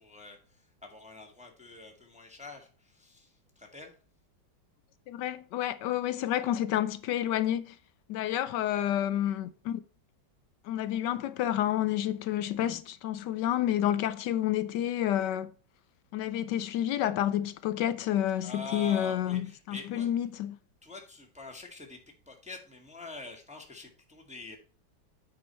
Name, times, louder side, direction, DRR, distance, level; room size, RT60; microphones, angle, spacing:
voice 1, 0.0-3.9 18.4-20.1 20.8-22.0 22.2-24.6, left 3 dB, 5° right, 1.3 m, -45 dB
voice 2, 5.1-7.8 8.1-9.8 10.6-15.5 16.1-19.4 19.7-20.6, left 11 dB, 75° left, 1.1 m, -29 dB
8.5 x 5.0 x 4.2 m
omnidirectional pair, 2.1 m